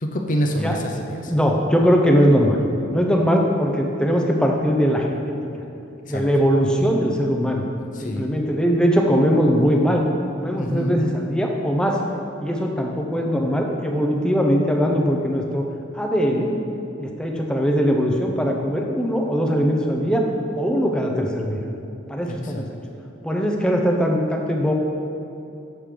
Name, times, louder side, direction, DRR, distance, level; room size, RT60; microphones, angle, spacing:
voice 1, 0.0-1.3 6.1-6.2 8.0-8.2 10.5-11.0 22.2-22.6, equal, 40° left, 2 dB, 0.7 m, -26 dB
voice 2, 1.3-2.6 2.9-5.6 6.1-7.6 8.0-10.0 10.4-12.0 12.4-15.7 15.9-16.6 17.0-20.3 20.5-21.6 22.1-22.8 23.2-24.7, equal, 5° left, 1 dB, 0.6 m, -20 dB
7.4 x 4.9 x 5.1 m, 2.7 s
head